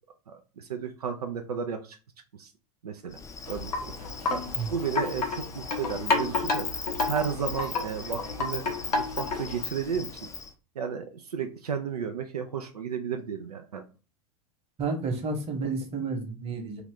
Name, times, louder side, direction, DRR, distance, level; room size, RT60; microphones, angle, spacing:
voice 1, 0.3-2.0 2.4-2.5 2.8-3.2 3.5-4.4 4.7-8.7 9.0-10.3 10.8-13.8, right 7 dB, 80° right, 6 dB, 0.5 m, -33 dB
Insect, 3.1-10.5, left 5 dB, 15° left, 0.5 m, -39 dB
Wind chime, 3.5-9.6, left 3 dB, 80° left, 1.0 m, -31 dB
voice 2, 14.8-16.8, right 4 dB, 30° right, 3 dB, 1.1 m, -31 dB
2.9 x 2.4 x 3.5 m, 0.33 s
figure-of-eight pair, 90°, 19 cm